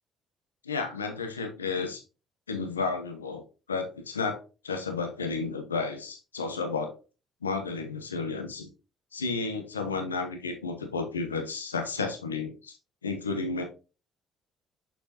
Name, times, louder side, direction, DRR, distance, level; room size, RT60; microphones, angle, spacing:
voice 1, 0.6-2.0 2.5-3.4 3.7-7.0 7.4-8.7 9.1-12.8 13.0-13.6, left 4 dB, 90° left, 5 dB, 0.8 m, -32 dB
6.5 x 5.7 x 2.8 m, 0.32 s
figure-of-eight pair, 50°, 0 cm